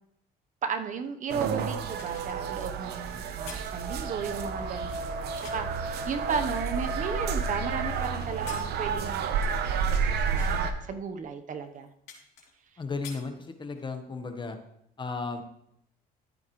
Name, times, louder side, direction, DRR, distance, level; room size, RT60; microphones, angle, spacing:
voice 1, 0.6-11.9, right 6 dB, 50° right, 7 dB, 1.0 m, -35 dB
sound 1, 1.3-10.7, right 5 dB, 75° right, 1.0 m, -30 dB
sound 2, 2.0-5.8 6.4-7.8 8.2-10.1 10.3-10.6 11.2-11.3 11.6-12.7 12.9-13.9 14.3-14.5, left 6 dB, 80° left, 3.2 m, -49 dB
voice 2, 12.8-14.6 15.0-15.4, left 4 dB, 30° left, 7 dB, 1.3 m, -34 dB
13.5 x 8.9 x 3.2 m, 0.77 s
cardioid pair, 110°, 17 cm